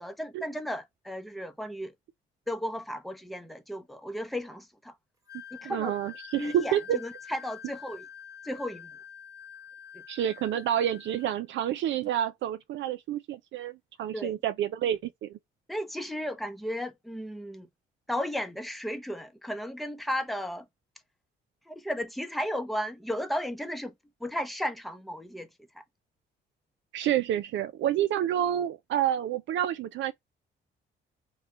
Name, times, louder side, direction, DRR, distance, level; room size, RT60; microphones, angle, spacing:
voice 1, 0.0-1.9 2.5-4.9 5.5-5.9 6.4-8.1 8.4-8.9 14.1-14.4 15.7-17.7 18.1-20.6 21.7-23.9 24.2-25.5, equal, ahead, 0.7 m, -34 dB
Wind instrument woodwind instrument, 5.3-11.4, left 8 dB, 15° right, 1.4 m, -47 dB
voice 2, 5.6-7.0 10.1-15.4 26.9-30.1, right 11 dB, 70° right, 0.4 m, -29 dB
3.2 x 2.2 x 4.2 m
cardioid pair, 90°, 20 cm